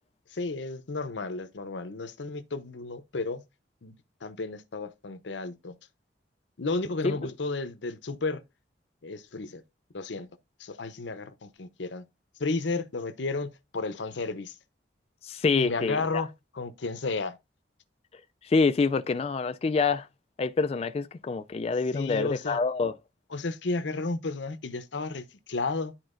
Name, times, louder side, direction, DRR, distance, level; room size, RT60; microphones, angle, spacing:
voice 1, 0.3-3.4 3.8-3.9 4.2-5.8 6.6-8.4 9.0-9.6 9.9-10.3 10.6-12.0 12.4-14.6 15.6-17.4 21.9-22.6 23.3-25.9, left 3 dB, 85° left, 0.8 m, -33 dB
voice 2, 15.2-16.2 18.4-20.1 20.4-22.9, left 4 dB, 35° left, 0.3 m, -26 dB
11.5 x 4.3 x 2.5 m
head